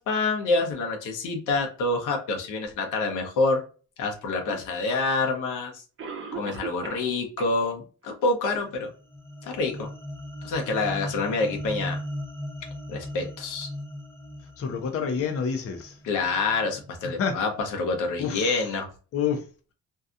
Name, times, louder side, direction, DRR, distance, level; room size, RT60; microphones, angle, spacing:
voice 1, 0.0-3.6 4.0-5.8 6.3-8.9 9.4-9.9 10.4-12.0 12.9-13.7 16.0-18.9, left 3 dB, 85° left, 0.8 m, -27 dB
Cough, 4.9-5.0 6.0-7.1 7.4-7.5 8.0-8.1 8.7-8.8, right 5 dB, 45° right, 0.8 m, -37 dB
sound 1, 8.7-17.1, equal, 10° left, 0.5 m, -38 dB
voice 2, 14.6-16.0 17.2-17.4 18.2-18.7 19.1-19.4, left 6 dB, 50° left, 0.6 m, -28 dB
2.7 x 2.3 x 2.4 m
cardioid pair, 90°, 30 cm